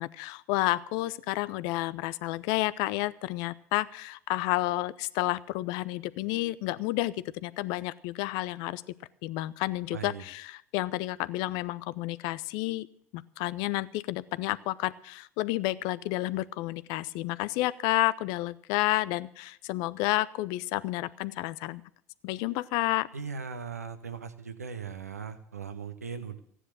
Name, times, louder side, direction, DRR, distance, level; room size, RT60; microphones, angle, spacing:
voice 1, 0.0-8.8 9.2-12.9 13.1-21.8 22.2-23.1, left 18 dB, 60° left, 18 dB, 0.6 m, -30 dB
voice 2, 9.9-10.2 23.1-26.4, right 6 dB, 90° right, 9 dB, 1.1 m, -39 dB
15.0 x 10.0 x 6.5 m, 0.66 s
hypercardioid pair, 70°, 8 cm